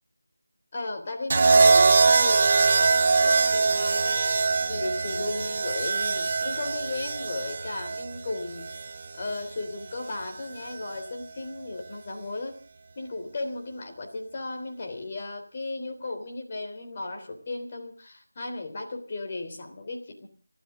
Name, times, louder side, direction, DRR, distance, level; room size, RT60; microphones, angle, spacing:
voice 1, 0.7-4.4 4.7-8.7 9.1-12.6 12.9-20.3, left 2 dB, 30° left, 3 dB, 3.4 m, -35 dB
sound 1, 1.3-9.4 10.6-11.0, right 4 dB, 30° right, 0.7 m, -23 dB
30.0 x 12.5 x 3.8 m, 0.40 s
figure-of-eight pair, 165°, 0 cm